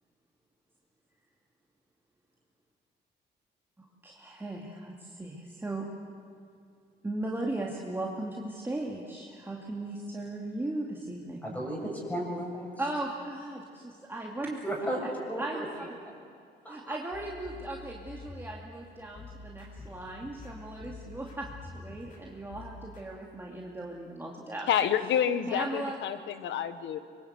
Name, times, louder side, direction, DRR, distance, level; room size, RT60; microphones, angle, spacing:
voice 1, 3.8-5.8 7.0-11.5 12.8-14.6 15.4-15.6 16.7-21.5 21.7-24.7 25.5-26.0, right 2 dB, 10° right, -2 dB, 2.5 m, -37 dB
voice 2, 11.4-12.7 14.6-15.0 15.3-15.9 16.6-17.0, right 1 dB, 10° left, -2 dB, 7.1 m, -34 dB
sound 1, 17.1-23.0, left 3 dB, 45° left, 7.0 m, -47 dB
voice 3, 24.7-27.0, left 9 dB, 85° left, 11 dB, 1.4 m, -28 dB
25.0 x 23.5 x 8.3 m, 2.3 s
cardioid pair, 115°, 18 cm